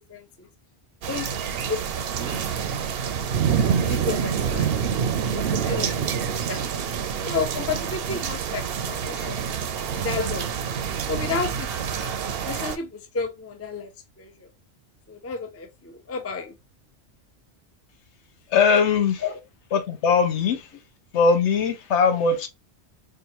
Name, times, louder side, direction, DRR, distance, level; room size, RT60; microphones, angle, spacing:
voice 1, 0.1-0.5 1.1-2.4 3.6-4.8 5.3-6.7 7.2-9.4 9.9-10.5 11.1-12.1 12.4-13.9 14.2-14.5 15.1-16.5 19.2-19.4, left 5 dB, 20° left, 0.4 m, -32 dB
sound 1, 1.0-12.8, right 7 dB, 65° right, 0.8 m, -27 dB
voice 2, 18.5-19.2 19.7-20.7 21.1-22.5, left 5 dB, 80° left, 1.0 m, -20 dB
4.5 x 2.5 x 2.9 m
omnidirectional pair, 1.2 m